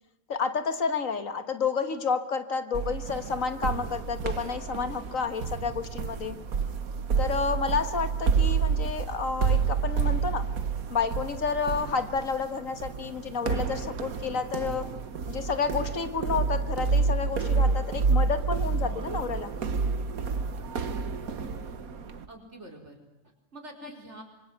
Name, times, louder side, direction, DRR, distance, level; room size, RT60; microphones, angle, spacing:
voice 1, 0.3-6.4 7.2-10.5 10.9-14.9 15.3-19.5, left 5 dB, 65° left, 10 dB, 1.8 m, -30 dB
sound 1, 2.7-22.3, right 5 dB, 75° right, 1.7 m, -29 dB
voice 2, 22.3-24.2, right 1 dB, 50° right, 2 dB, 4.9 m, -46 dB
26.5 x 23.5 x 8.0 m, 0.90 s
omnidirectional pair, 1.5 m